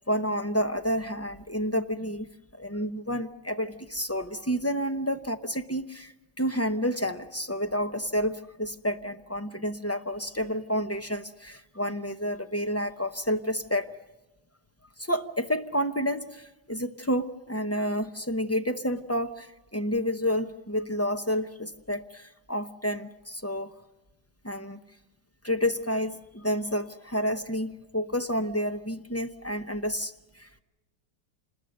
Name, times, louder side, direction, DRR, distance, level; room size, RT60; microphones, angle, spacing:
voice 1, 0.1-13.9 15.0-23.7 24.4-24.8 25.4-30.6, equal, 25° left, 7 dB, 0.3 m, -30 dB
27.5 x 20.5 x 6.6 m, 1.1 s
omnidirectional pair, 1.8 m